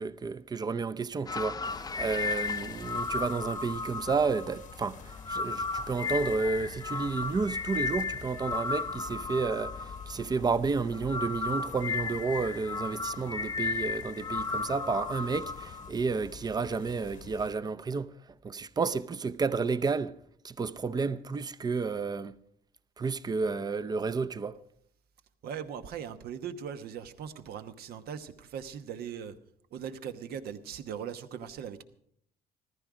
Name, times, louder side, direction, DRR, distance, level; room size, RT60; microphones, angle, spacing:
voice 1, 0.0-18.1 18.4-20.2 20.4-22.3 23.0-24.6, right 4 dB, 25° right, 0.6 m, -31 dB
sound 1, 1.3-10.5 10.8-15.9, left 4 dB, 20° left, 0.6 m, -34 dB
sound 2, 1.6-17.6, left 6 dB, 50° left, 1.0 m, -48 dB
voice 2, 25.4-29.3 29.7-31.8, right 8 dB, 65° right, 1.1 m, -39 dB
14.5 x 14.0 x 4.9 m
cardioid pair, 110°, 17 cm